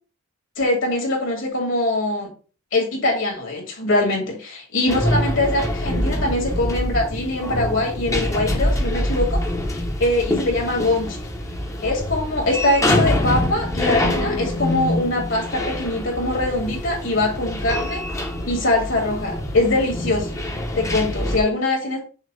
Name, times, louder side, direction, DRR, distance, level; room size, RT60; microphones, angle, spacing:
voice 1, 0.6-2.3 2.7-9.4 9.7-11.2 11.8-18.0 18.5-20.3 20.8-22.0, left 2 dB, 60° left, 0 dB, 2.5 m, -22 dB
sound 1, 4.9-21.4, left 1 dB, 15° left, 1.0 m, -25 dB
6.4 x 2.9 x 5.3 m, 0.37 s
head